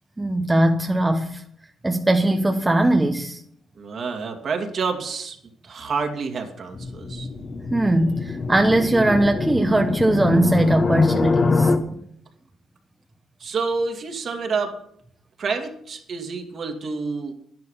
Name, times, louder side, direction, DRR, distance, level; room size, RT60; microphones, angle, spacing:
voice 1, 0.2-1.4 1.8-3.4 7.7-11.7, right 1 dB, 15° right, 1.0 m, -20 dB
voice 2, 3.8-5.4 5.6-7.3 13.4-14.8 15.4-17.3, right 4 dB, 55° right, 2.2 m, -28 dB
sound 1, 6.7-11.8, left 3 dB, 40° left, 1.4 m, -23 dB
11.0 x 10.5 x 5.6 m
cardioid pair, 90°, 0 cm